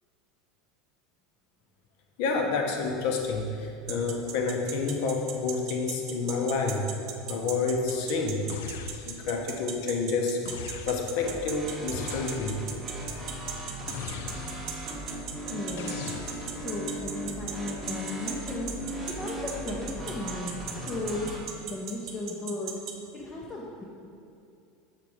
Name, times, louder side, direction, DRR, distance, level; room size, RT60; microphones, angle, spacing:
voice 1, 2.2-6.9 7.3-8.5 9.1-10.4 10.9-12.6, left 4 dB, 55° left, 2 dB, 0.7 m, -29 dB
sound 1, 3.9-22.9, right 11 dB, 45° right, 0.5 m, -36 dB
sound 2, 8.5-9.4 10.4-11.3 11.9-12.8 13.9-14.8 15.8-16.7, left 7 dB, 80° left, 0.3 m, -40 dB
sound 3, 11.2-21.4, equal, 5° right, 1.0 m, -38 dB
voice 2, 15.5-16.2 16.6-18.8 19.1-21.4 21.7-22.8 23.1-23.8, left 2 dB, 15° left, -4 dB, 0.5 m, -35 dB
6.0 x 4.0 x 4.8 m, 2.5 s
supercardioid pair, 170°, 0 cm